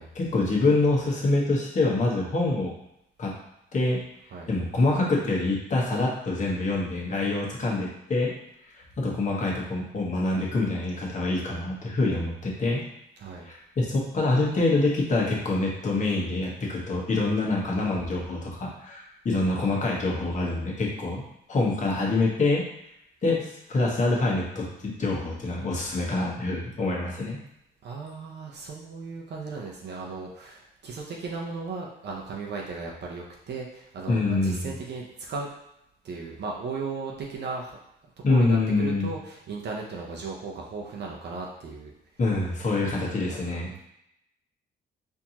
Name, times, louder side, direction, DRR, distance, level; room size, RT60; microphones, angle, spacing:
voice 1, 0.1-2.7 3.2-3.3 3.7-4.0 4.5-8.3 8.7-12.8 13.4-21.2 21.5-22.6 23.2-27.4 34.1-34.7 38.2-39.1 42.2-43.7, left 2 dB, 40° left, -3 dB, 1.2 m, -25 dB
voice 2, 13.2-13.5 27.8-35.5 36.0-37.8 38.3-41.9 42.8-43.8, right 4 dB, 60° right, -2 dB, 0.7 m, -36 dB
4.4 x 2.7 x 2.8 m, 0.80 s
cardioid pair, 90°, 20 cm